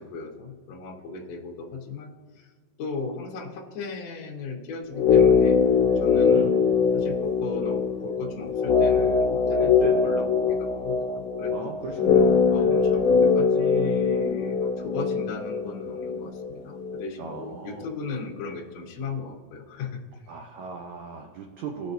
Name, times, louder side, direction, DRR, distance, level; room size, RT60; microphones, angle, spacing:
voice 1, 0.0-2.5 2.8-5.6 6.0-6.5 6.9-9.8 10.0-11.8 12.5-20.0, left 4 dB, 60° left, -1 dB, 2.0 m, -37 dB
sound 1, 4.9-17.1 17.3-17.4, left 5 dB, 90° left, 2.7 m, -22 dB
voice 2, 6.1-6.6 9.8-10.0 11.5-12.8 17.2-17.9 20.3-21.9, right 6 dB, 75° right, 2 dB, 1.7 m, -37 dB
18.5 x 6.3 x 2.6 m, 1.5 s
omnidirectional pair, 4.3 m